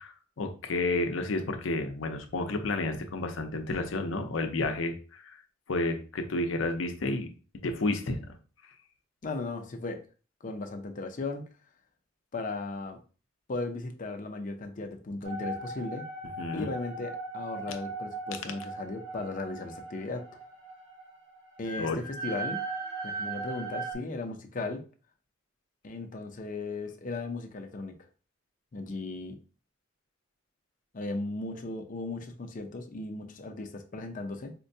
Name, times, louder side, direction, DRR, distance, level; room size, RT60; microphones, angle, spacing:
voice 1, 0.0-5.4 5.7-7.3 7.6-8.2 16.4-16.7 21.8-22.0, left 2 dB, 80° left, 6 dB, 0.6 m, -31 dB
voice 2, 9.2-10.0 10.4-11.5 12.3-13.0 13.5-16.1 16.5-20.4 21.6-22.6 23.0-24.8 25.8-28.0 28.7-29.4 30.9-34.5, left 3 dB, 40° left, 5 dB, 0.5 m, -36 dB
sound 1, 15.2-23.9, right 3 dB, 60° right, 1.5 m, -38 dB
4.4 x 2.2 x 2.7 m, 0.36 s
head